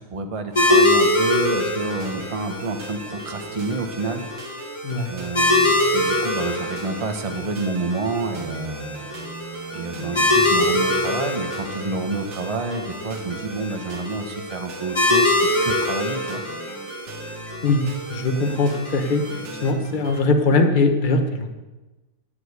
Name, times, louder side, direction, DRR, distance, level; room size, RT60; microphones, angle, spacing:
voice 1, 0.1-4.2 5.1-9.1 9.7-16.4, right 3 dB, 40° right, 5 dB, 0.5 m, -29 dB
sound 1, 0.5-20.3, right 4 dB, 85° right, 1.9 m, -41 dB
sound 2, 0.6-19.7, left 2 dB, 15° left, 1.6 m, -24 dB
voice 2, 4.8-5.2 17.6-17.8 18.1-19.2 19.6-21.5, left 3 dB, 30° left, 5 dB, 1.0 m, -20 dB
11.0 x 7.1 x 8.1 m, 1.1 s
omnidirectional pair, 2.2 m